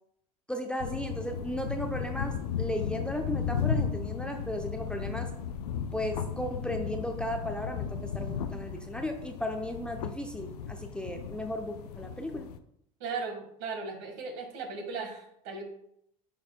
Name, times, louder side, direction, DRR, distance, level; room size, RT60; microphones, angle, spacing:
voice 1, 0.5-5.3 5.9-12.5, equal, 5° left, 4 dB, 0.7 m, -35 dB
sound 1, 0.8-12.6, left 7 dB, 80° left, 0.5 m, -35 dB
voice 2, 13.0-15.6, right 4 dB, 65° right, 4 dB, 1.6 m, -37 dB
10.5 x 4.2 x 2.2 m, 0.73 s
hypercardioid pair, 80°, 20 cm